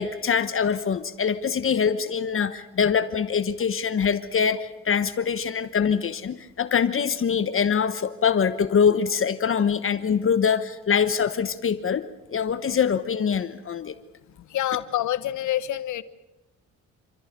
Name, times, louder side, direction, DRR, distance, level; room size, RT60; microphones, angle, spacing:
voice 1, 0.0-12.0 12.3-14.0, left 7 dB, 45° left, 12 dB, 1.2 m, -24 dB
voice 2, 14.5-16.0, left 12 dB, 75° left, 14 dB, 1.3 m, -27 dB
28.5 x 14.0 x 9.1 m, 1.0 s
cardioid pair, 90°, 30 cm